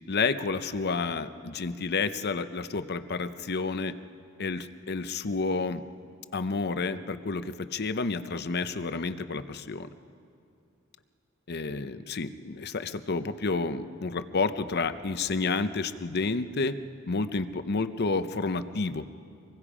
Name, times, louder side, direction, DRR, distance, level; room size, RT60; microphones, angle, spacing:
voice 1, 0.1-3.9 4.4-5.8 6.3-9.9 11.5-16.8 17.1-19.1, left 4 dB, 50° left, 11 dB, 0.7 m, -30 dB
25.5 x 21.0 x 5.0 m, 2.6 s
head